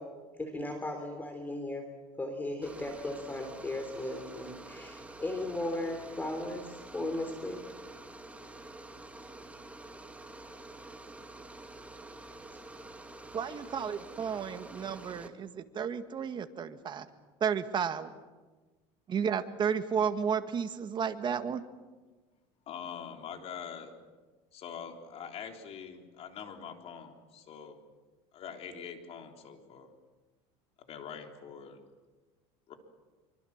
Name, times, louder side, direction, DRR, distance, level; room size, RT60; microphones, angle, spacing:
voice 1, 0.0-1.9 2.2-7.7 12.5-12.6, left 1 dB, 15° left, 6 dB, 3.4 m, -37 dB
sound 1, 2.6-15.3, right 2 dB, 10° right, 2.3 m, -48 dB
voice 2, 13.3-17.1 17.4-18.1 19.1-21.6, right 7 dB, 35° right, 8 dB, 1.9 m, -32 dB
voice 3, 22.7-23.9 24.5-27.8 28.3-30.0 30.9-31.8 32.7-32.8, left 7 dB, 45° left, 4 dB, 3.7 m, -44 dB
25.5 x 24.5 x 7.4 m, 1.3 s
supercardioid pair, 115°, 14 cm